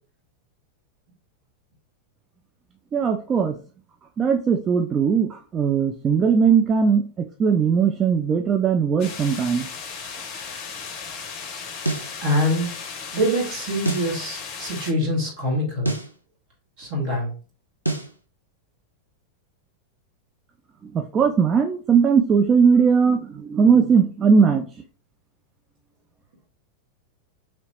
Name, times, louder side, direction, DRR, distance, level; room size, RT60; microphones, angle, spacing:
voice 1, 2.9-3.6 4.2-9.7 20.9-24.7, right 6 dB, 25° right, 5 dB, 0.3 m, -19 dB
sound 1, 9.0-14.9, left 6 dB, 40° left, 0.6 m, -36 dB
sound 2, 11.8-12.1 13.8-14.1 15.8-16.1 17.8-18.1, right 2 dB, 90° right, 0.4 m, -26 dB
voice 2, 12.2-12.8 13.1-15.9 16.8-17.3, equal, 45° right, -2 dB, 1.6 m, -24 dB
3.1 x 2.8 x 2.9 m, 0.38 s
figure-of-eight pair, 90°, 0 cm